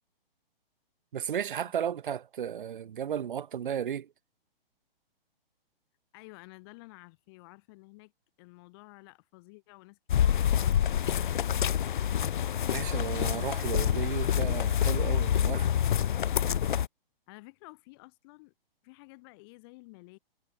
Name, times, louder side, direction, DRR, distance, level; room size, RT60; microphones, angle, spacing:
voice 1, 1.1-4.1 12.7-15.7, right 9 dB, 55° right, 3.7 m, -34 dB
voice 2, 6.1-8.1 8.4-11.0 17.3-18.5 18.8-20.2, left 26 dB, 25° left, 3.7 m, -52 dB
sound 1, 10.1-16.9, left 9 dB, 55° left, 1.3 m, -27 dB
hypercardioid pair, 170°, 30 cm